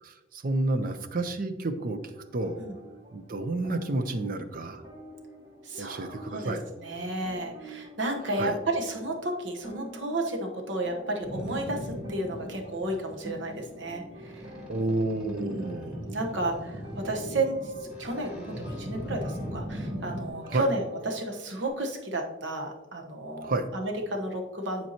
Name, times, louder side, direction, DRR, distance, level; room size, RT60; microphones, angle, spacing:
voice 1, 0.0-2.0 2.3-2.6 3.1-4.8 5.8-6.6 8.3-8.6 14.7-16.0 20.5-20.7 23.4-23.7, right 2 dB, 45° right, 9 dB, 0.6 m, -30 dB
sound 1, 1.9-21.7, equal, 30° right, 2.2 m, -47 dB
voice 2, 5.6-14.5 15.3-24.9, right 1 dB, 65° right, 2 dB, 1.1 m, -32 dB
Boat Water vehicle, 11.2-20.3, equal, 5° right, 2.3 m, -39 dB
10.5 x 4.5 x 2.9 m, 1.1 s
head